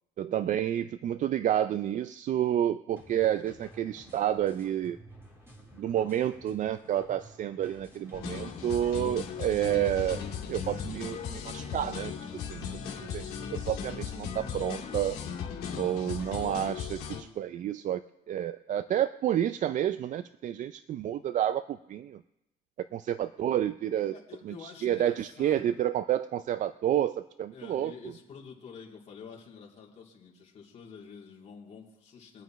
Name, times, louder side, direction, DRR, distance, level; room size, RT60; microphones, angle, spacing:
voice 1, 0.2-5.0 5.8-10.2 10.5-12.1 12.4-15.2 15.8-18.0 18.3-22.2 22.8-24.2 24.5-28.1, right 11 dB, 50° right, 13 dB, 0.4 m, -30 dB
sound 1, 2.9-13.3, right 1 dB, 15° right, 3.8 m, -53 dB
sound 2, 8.1-17.2, left 7 dB, 75° left, 2.3 m, -37 dB
voice 2, 24.1-25.8 27.5-32.4, left 6 dB, 40° left, -3 dB, 3.1 m, -48 dB
23.0 x 9.0 x 3.1 m, 0.90 s
cardioid pair, 110°, 17 cm